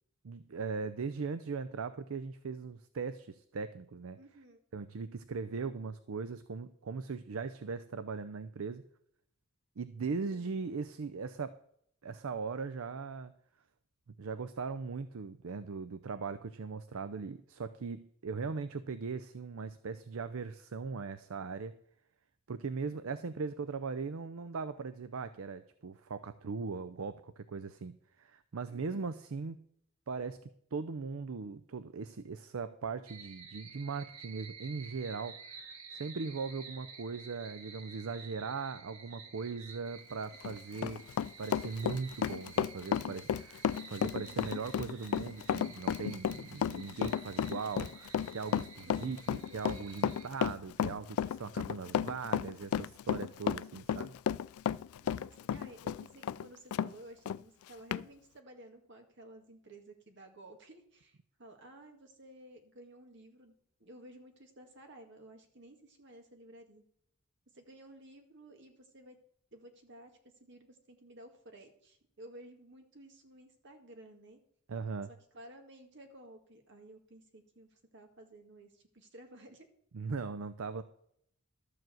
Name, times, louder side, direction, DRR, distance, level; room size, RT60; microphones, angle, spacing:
voice 1, 0.2-4.2 4.7-8.8 9.8-11.6 12.0-13.3 14.2-21.8 22.5-29.6 30.1-30.4 30.7-41.0 41.4-54.1 74.7-75.1 79.9-80.8, right 4 dB, 70° right, 11 dB, 0.5 m, -39 dB
voice 2, 4.2-4.6 10.3-10.5 28.7-29.1 44.2-44.6 48.8-49.6 55.0-63.5 63.8-66.8 67.5-69.2 69.5-74.4 75.1-79.7, right 1 dB, 55° right, 4 dB, 1.9 m, -54 dB
sound 1, 33.1-50.3, right 5 dB, 90° right, 1.4 m, -52 dB
Run, 40.3-56.9 57.3-57.4 57.9-58.0, left 8 dB, 80° left, 0.3 m, -33 dB
12.5 x 4.8 x 7.7 m, 0.70 s
head